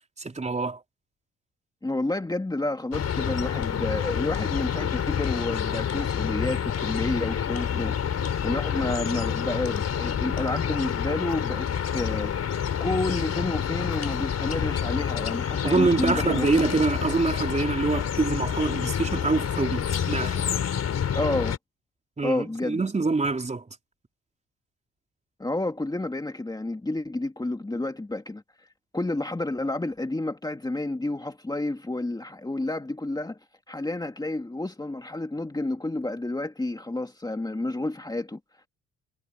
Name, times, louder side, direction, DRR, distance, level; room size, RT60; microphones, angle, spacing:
voice 1, 0.2-0.8 15.6-20.4 22.2-23.7, right 3 dB, 25° right, 4.1 m, -25 dB
voice 2, 1.8-16.7 21.1-21.6 22.2-22.8 25.4-28.7 28.9-33.4 33.7-38.4, left 2 dB, 15° left, 2.4 m, -30 dB
sound 1, 2.9-21.6, left 8 dB, 55° left, 4.2 m, -28 dB
cardioid pair, 90°, 30 cm